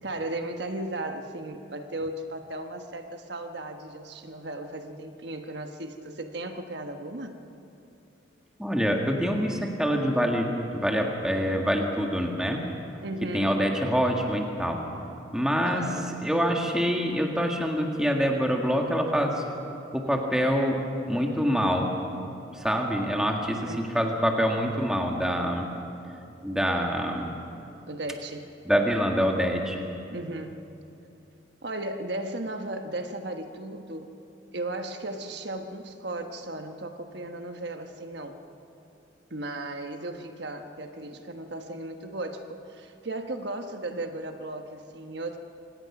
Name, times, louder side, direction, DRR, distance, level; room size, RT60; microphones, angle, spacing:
voice 1, 0.0-7.4 13.0-13.6 15.6-16.1 23.5-23.9 27.9-28.5 30.1-30.7 31.6-34.1 34.5-38.4 39.3-45.4, right 2 dB, 65° right, 5 dB, 1.2 m, -36 dB
voice 2, 8.6-12.6 13.3-14.8 15.3-15.9 16.2-19.3 19.9-20.8 21.1-21.9 22.5-25.7 26.4-27.3 28.7-29.8, equal, 5° right, 1 dB, 1.8 m, -25 dB
25.0 x 18.5 x 6.0 m, 2.8 s
head